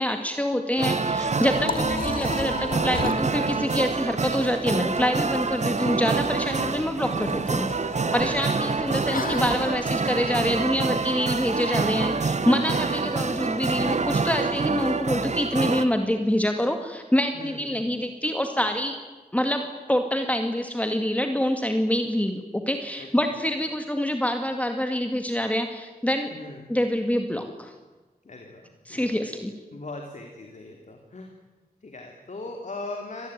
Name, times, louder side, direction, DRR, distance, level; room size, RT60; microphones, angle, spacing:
voice 1, 0.0-7.7 8.1-19.0 19.3-26.3 26.7-27.7 28.9-29.5, left 1 dB, 10° left, 6 dB, 2.1 m, -26 dB
sound 1, 0.8-15.9, right 4 dB, 50° right, 1.4 m, -26 dB
Liquid, 1.1-9.8, left 4 dB, 70° left, 2.8 m, -35 dB
voice 2, 1.5-2.0 6.4-7.0 8.2-8.4 12.5-13.2 17.3-17.8 23.0-23.4 26.3-26.7 28.2-29.3 29.7-31.3 31.8-33.3, left 2 dB, 55° left, 3 dB, 3.4 m, -40 dB
26.0 x 19.0 x 9.3 m, 1.2 s
wide cardioid pair, 90°, 15 cm